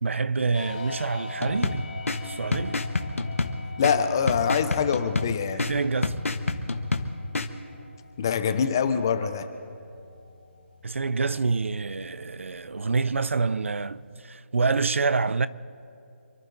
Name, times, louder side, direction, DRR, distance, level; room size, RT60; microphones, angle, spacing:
voice 1, 0.0-1.9 2.2-2.8 5.5-6.2 10.8-15.5, right 4 dB, 70° right, 0.6 m, -27 dB
sound 1, 0.5-14.1, left 3 dB, 35° left, 2.3 m, -44 dB
sound 2, 1.4-7.5, left 3 dB, 85° left, 1.4 m, -29 dB
voice 2, 3.8-5.6 8.2-9.5, left 7 dB, 20° left, 0.6 m, -24 dB
27.5 x 12.0 x 4.0 m
hypercardioid pair, 175°, 7 cm